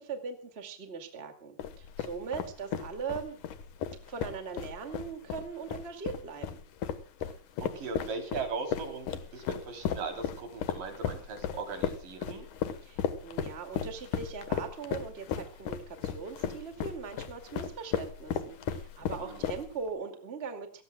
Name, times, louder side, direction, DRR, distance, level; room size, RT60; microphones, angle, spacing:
voice 1, 0.0-3.4 4.1-6.6 12.8-20.8, right 5 dB, 20° right, 6 dB, 2.1 m, -40 dB
sound 1, 1.6-19.9, left 8 dB, 75° left, 2.8 m, -35 dB
voice 2, 7.6-12.5 19.2-19.5, right 4 dB, 80° right, 4 dB, 5.1 m, -38 dB
28.5 x 16.0 x 2.3 m, 0.35 s
omnidirectional pair, 3.7 m